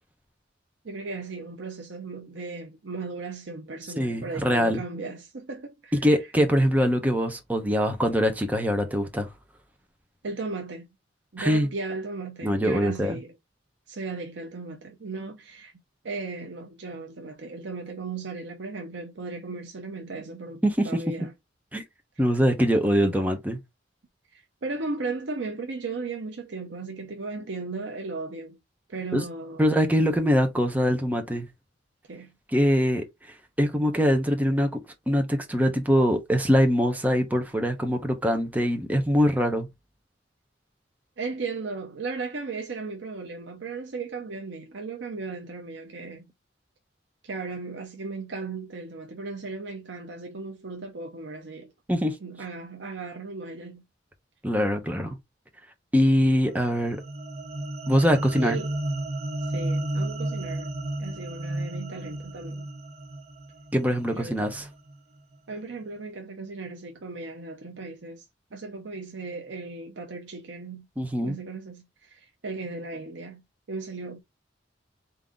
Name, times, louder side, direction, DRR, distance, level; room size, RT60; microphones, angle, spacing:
voice 1, 0.8-6.1 10.2-10.9 11.3-13.3 13.9-15.7 16.0-21.3 24.3-28.6 28.9-29.6 32.1-32.3 41.2-46.2 47.2-51.7 52.2-53.8 58.4-58.8 59.4-60.7 61.0-62.7 64.1-64.4 65.5-68.2 68.5-70.9 71.2-73.4 73.7-74.2, right 3 dB, 75° right, 0.7 m, -36 dB
voice 2, 4.0-4.8 6.0-9.3 11.4-11.7 12.4-13.2 20.6-20.9 21.7-21.8 22.2-23.6 29.1-29.2 29.6-31.5 32.5-33.0 33.6-34.7 35.1-39.7 51.9-52.2 54.4-55.1 55.9-57.0 57.9-58.6 63.7-64.6 71.0-71.4, equal, 10° right, 0.8 m, -23 dB
sound 1, 56.5-64.9, right 1 dB, 35° right, 0.8 m, -33 dB
3.8 x 2.7 x 3.5 m
head